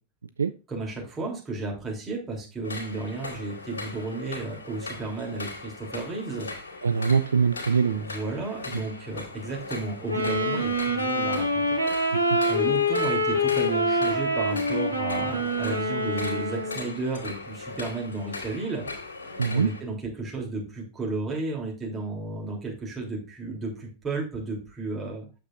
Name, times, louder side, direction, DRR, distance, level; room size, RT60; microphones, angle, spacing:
voice 1, 0.7-6.5 7.9-11.6 12.5-18.9 19.5-25.3, right 3 dB, 20° right, 3.3 m, -33 dB
sound 1, 2.6-19.8, left 3 dB, 65° left, 2.4 m, -39 dB
voice 2, 6.8-8.2 12.1-12.4 19.4-19.7, right 6 dB, 70° right, 0.3 m, -23 dB
Wind instrument woodwind instrument, 10.1-16.9, equal, 90° right, 1.2 m, -25 dB
8.8 x 7.2 x 2.6 m
figure-of-eight pair, 90°, 0 cm